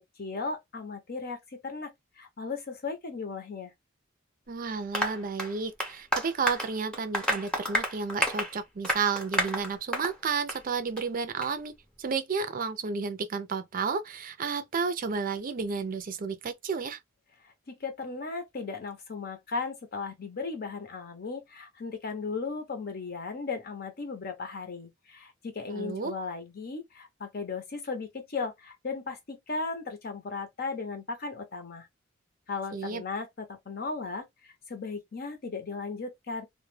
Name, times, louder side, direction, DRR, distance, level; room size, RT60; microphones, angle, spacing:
voice 1, 0.2-3.7 17.4-31.9 32.5-36.4, left 4 dB, 50° left, 0.7 m, -36 dB
voice 2, 4.5-11.7 12.0-17.0 25.7-26.1 32.7-33.0, right 5 dB, 45° right, 0.5 m, -32 dB
Applause, 4.9-10.2 10.5-10.6 11.0-11.1 11.4-11.5, equal, 5° left, 0.8 m, -31 dB
2.3 x 2.1 x 3.2 m
head